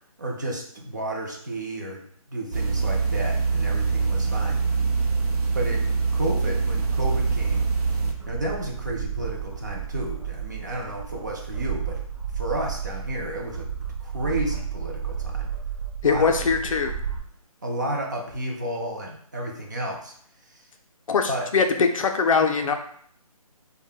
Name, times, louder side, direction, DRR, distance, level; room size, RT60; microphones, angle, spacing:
voice 1, 0.2-2.0 2.3-4.7 5.5-7.7 8.3-12.0 12.3-13.7 14.0-15.5 16.0-16.3 17.6-20.1 20.5-20.6 21.2-21.5, right 1 dB, 30° right, -1 dB, 0.4 m, -32 dB
sound 1, 2.5-8.1, right 4 dB, 90° right, 0.6 m, -24 dB
sound 2, 6.7-17.2, right 7 dB, 65° right, 1.0 m, -32 dB
voice 2, 16.0-16.9 21.1-22.7, left 5 dB, 60° left, 4 dB, 0.4 m, -22 dB
2.1 x 2.1 x 3.7 m, 0.62 s
hypercardioid pair, 165°, 19 cm